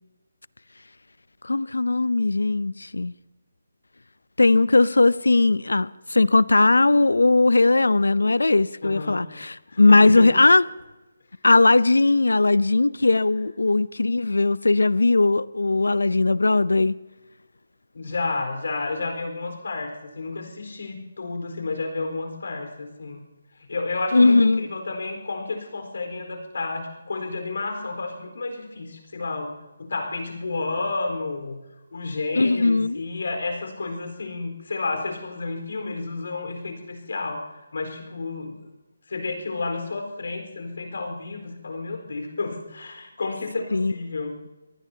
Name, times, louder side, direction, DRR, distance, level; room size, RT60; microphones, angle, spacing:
voice 1, 1.4-3.1 4.4-10.6 11.4-17.0 24.1-24.7 32.4-33.0 43.7-43.9, left 3 dB, 85° left, 0.6 m, -19 dB
voice 2, 8.8-9.3 9.7-10.3 17.9-23.2 23.5-29.5 29.8-31.6 31.9-38.6 39.1-44.4, left 3 dB, 65° left, 4.3 m, -31 dB
25.5 x 19.0 x 2.9 m
figure-of-eight pair, 155°, 0 cm